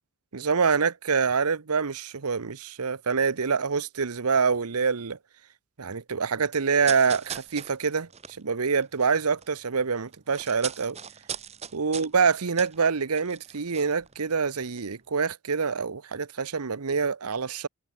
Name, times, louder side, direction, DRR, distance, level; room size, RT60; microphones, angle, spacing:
voice 1, 0.3-5.2 5.8-11.0 11.7-17.7, right 5 dB, 90° right, 0.9 m, -26 dB
sound 1, 6.7-9.6 9.8-14.5 14.7-14.9, right 8 dB, 30° right, 1.3 m, -40 dB
head